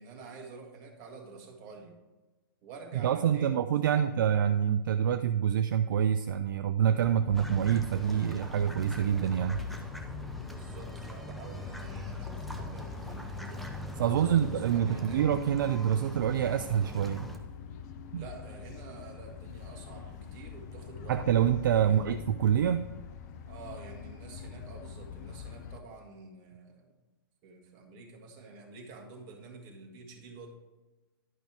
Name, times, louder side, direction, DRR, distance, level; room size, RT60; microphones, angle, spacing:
voice 1, 0.0-2.0 2.6-4.0 10.4-15.2 18.1-21.2 21.8-22.1 23.5-27.0 27.4-30.5, right 4 dB, 35° right, 2 dB, 1.9 m, -48 dB
voice 2, 2.9-9.6 13.9-17.3 18.1-18.3 21.1-22.9, right 9 dB, 60° right, 10 dB, 0.4 m, -26 dB
sound 1, 7.0-25.8, left 6 dB, 50° left, 0.8 m, -44 dB
sound 2, 7.3-17.4, equal, ahead, 0.8 m, -42 dB
11.0 x 5.3 x 4.6 m, 1.1 s
hypercardioid pair, 120°, 12 cm